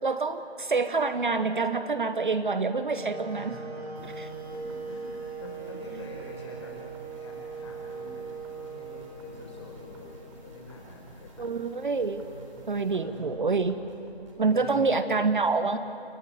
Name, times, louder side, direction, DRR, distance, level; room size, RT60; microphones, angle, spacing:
voice 1, 0.0-3.6 11.4-12.2 12.7-13.8 14.4-15.8, right 4 dB, 50° right, 11 dB, 1.0 m, -26 dB
Wind instrument woodwind instrument, 3.0-10.9, right 4 dB, 85° right, 3.7 m, -40 dB
voice 2, 3.3-4.2 4.5-6.8 7.2-10.1 10.3-11.5 12.9-13.4 14.4-14.9, left 2 dB, 25° left, -1 dB, 4.5 m, -47 dB
sound 1, 3.9-14.5, right 1 dB, 30° right, 3.9 m, -50 dB
29.0 x 11.5 x 9.8 m, 2.7 s
figure-of-eight pair, 165°, 32 cm